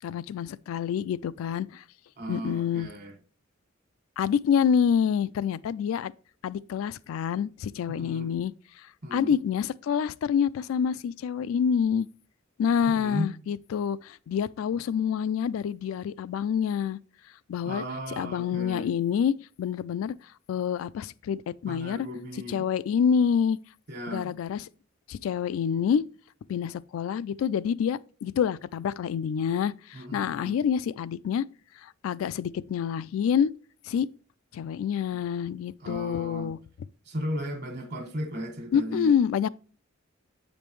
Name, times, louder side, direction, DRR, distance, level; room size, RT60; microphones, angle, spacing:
voice 1, 0.0-1.8 2.3-2.9 4.2-6.1 6.4-8.5 9.1-12.1 12.6-17.0 17.5-17.8 18.2-20.1 20.5-22.1 22.5-23.6 24.1-24.7 25.1-26.0 26.5-31.4 31.8-33.5 33.9-34.1 34.5-36.6 38.7-39.5, left 7 dB, 90° left, 0.3 m, -27 dB
voice 2, 2.2-3.2 7.9-8.3 9.0-9.4 12.9-13.3 17.6-18.9 21.7-22.7 23.9-24.4 29.9-30.5 35.1-35.2 35.8-36.5 37.0-39.1, equal, 55° right, 1.4 m, -36 dB
7.5 x 5.2 x 3.0 m
head